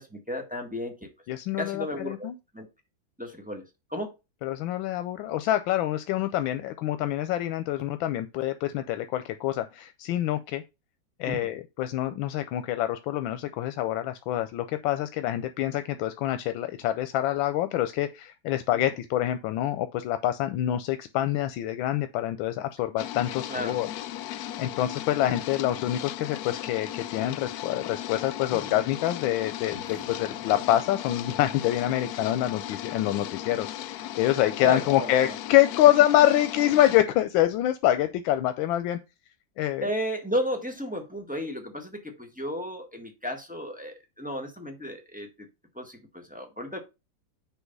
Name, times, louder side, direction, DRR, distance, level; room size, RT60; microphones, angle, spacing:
voice 1, 0.0-1.1 1.6-2.3 2.5-2.7 3.2-3.6 3.9-4.1 11.2-11.5 23.5-23.8 28.5-28.8 34.6-35.3 39.8-45.3 45.7-46.8, equal, 5° right, 1.4 m, -33 dB
voice 2, 1.3-2.3 4.4-10.6 11.2-23.9 24.6-39.0 39.6-39.9, left 13 dB, 90° left, 1.4 m, -26 dB
sound 1, 23.0-37.0, left 13 dB, 75° left, 0.9 m, -37 dB
sound 2, 29.6-34.4, equal, 10° left, 2.2 m, -54 dB
7.0 x 4.4 x 5.3 m
omnidirectional pair, 2.1 m